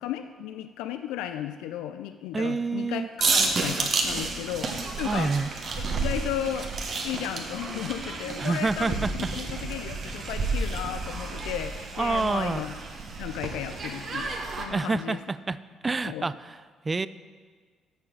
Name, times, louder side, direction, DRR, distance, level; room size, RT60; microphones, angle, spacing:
voice 1, 0.0-3.0 3.3-5.3 6.0-6.7 7.0-12.8 13.2-15.2 16.0-16.3, left 11 dB, 80° left, 9 dB, 0.4 m, -34 dB
voice 2, 2.3-3.1 5.0-5.5 8.4-9.3 12.0-12.6 14.7-15.6 15.8-16.6 16.8-17.1, right 3 dB, 30° right, 16 dB, 0.4 m, -27 dB
sound 1, 3.2-14.7, right 3 dB, 50° right, 1.4 m, -31 dB
6.9 x 6.8 x 6.5 m, 1.5 s
hypercardioid pair, 55°, 0 cm